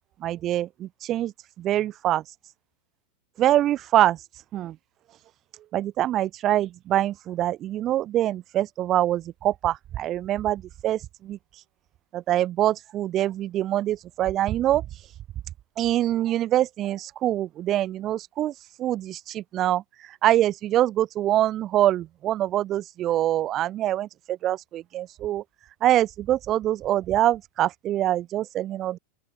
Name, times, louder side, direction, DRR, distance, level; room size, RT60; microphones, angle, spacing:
voice 1, 0.2-2.2 3.4-4.2 4.5-4.8 5.7-11.4 12.1-14.9 15.8-25.4 25.8-29.0, right 13 dB, 30° right, 7.7 m, -24 dB
open air
figure-of-eight pair, 90°, 0 cm